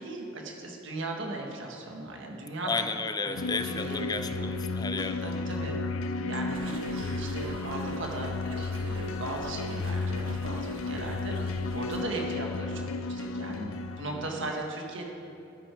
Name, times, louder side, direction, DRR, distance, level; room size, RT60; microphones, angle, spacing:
voice 1, 0.0-2.8 3.2-3.4 3.6-4.5 5.2-5.7 6.3-13.7 14.0-15.1, right 2 dB, 65° right, 1 dB, 1.6 m, -38 dB
voice 2, 2.7-5.3, left 4 dB, 20° left, 10 dB, 0.5 m, -33 dB
sound 1, 3.3-14.5, left 3 dB, 90° left, 0.5 m, -33 dB
sound 2, 6.5-12.0, right 2 dB, 80° right, 1.3 m, -46 dB
13.5 x 9.9 x 4.6 m, 2.6 s
head